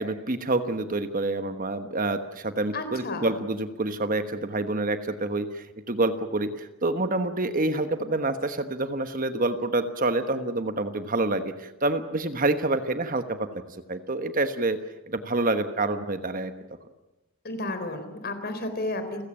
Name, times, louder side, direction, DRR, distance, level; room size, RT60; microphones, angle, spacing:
voice 1, 0.0-13.6 13.9-14.8 15.1-16.5, right 2 dB, 35° right, 9 dB, 1.2 m, -27 dB
voice 2, 2.7-3.4 17.4-19.2, left 2 dB, 45° left, 8 dB, 3.8 m, -32 dB
29.5 x 16.0 x 8.8 m, 1.0 s
head